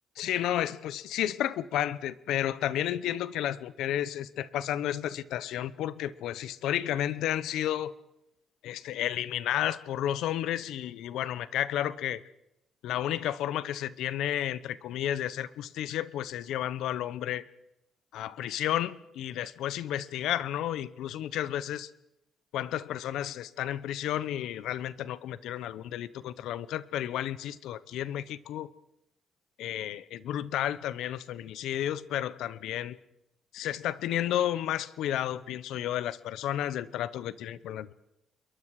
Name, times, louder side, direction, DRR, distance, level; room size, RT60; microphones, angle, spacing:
voice 1, 0.2-7.9 8.6-12.2 12.8-17.4 18.1-21.9 22.5-28.7 29.6-33.0 33.5-37.9, left 12 dB, 85° left, 17 dB, 1.0 m, -32 dB
27.5 x 22.5 x 4.9 m, 0.85 s
cardioid pair, 90°, 0 cm